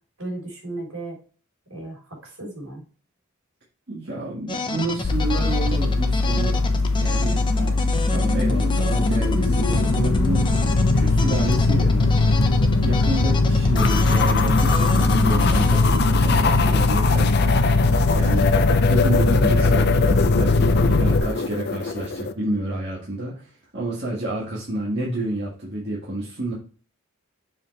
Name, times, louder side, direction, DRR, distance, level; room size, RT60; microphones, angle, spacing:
voice 1, 0.2-1.2 1.7-2.8 7.6-7.8, right 2 dB, 75° right, -1 dB, 3.6 m, -35 dB
voice 2, 3.9-6.6 7.0-7.4 8.1-10.7 10.9-12.1 12.8-17.4 18.2-18.5 18.8-26.5, right 1 dB, 50° right, -6 dB, 1.8 m, -29 dB
sound 1, 4.5-18.4, left 2 dB, 20° left, 0.7 m, -29 dB
sound 2, 5.0-21.2, left 3 dB, 80° left, 0.8 m, -20 dB
sound 3, 13.8-22.3, left 5 dB, 45° left, 0.5 m, -25 dB
7.0 x 4.7 x 3.2 m, 0.40 s
head